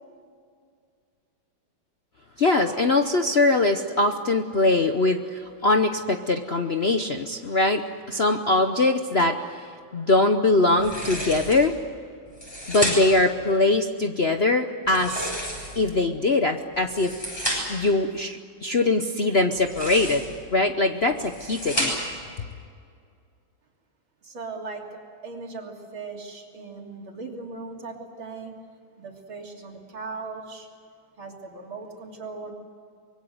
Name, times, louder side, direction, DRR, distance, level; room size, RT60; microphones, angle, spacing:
voice 1, 2.4-11.8 12.7-15.3 15.7-17.1 17.7-20.2 20.5-22.0, left 2 dB, 45° left, 6 dB, 0.8 m, -22 dB
sound 1, 10.8-11.7 12.3-13.3 14.8-15.9 16.7-17.9 19.5-20.4 21.0-22.2, equal, 10° left, 7.9 m, -31 dB
voice 2, 24.2-28.5 29.0-30.7 31.2-32.5, right 4 dB, 80° right, 1 dB, 3.9 m, -38 dB
25.0 x 22.5 x 8.0 m, 2.2 s
omnidirectional pair, 2.2 m